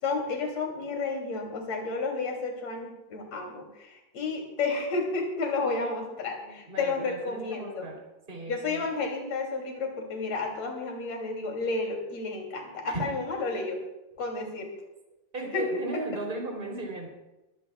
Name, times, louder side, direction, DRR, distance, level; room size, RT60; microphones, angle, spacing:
voice 1, 0.0-7.9 8.5-13.8 14.2-14.7 15.5-15.6, left 3 dB, 45° left, 1 dB, 3.9 m, -31 dB
voice 2, 5.6-6.0 6.4-8.0 8.3-8.8 12.8-13.0 15.3-17.1, right 2 dB, 15° right, 0 dB, 3.4 m, -36 dB
23.5 x 15.5 x 2.4 m, 0.98 s
omnidirectional pair, 4.6 m